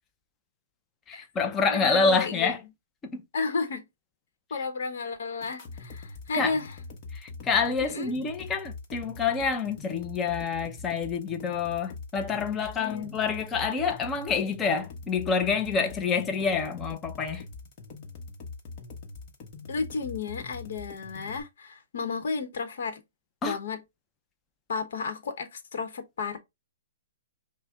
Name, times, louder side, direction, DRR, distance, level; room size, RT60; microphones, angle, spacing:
voice 1, 1.1-2.6 3.0-3.2 6.3-6.6 7.1-17.4 23.4-23.6, left 5 dB, 15° left, 0.6 m, -27 dB
voice 2, 1.7-2.5 3.3-3.8 4.5-6.7 7.8-8.1 12.8-13.1 19.7-23.0 23.4-23.8 24.7-26.4, left 4 dB, 65° left, 1.0 m, -32 dB
sound 1, 5.4-21.4, left 4 dB, 35° left, 1.1 m, -43 dB
5.5 x 2.2 x 3.8 m
hypercardioid pair, 145°, 0 cm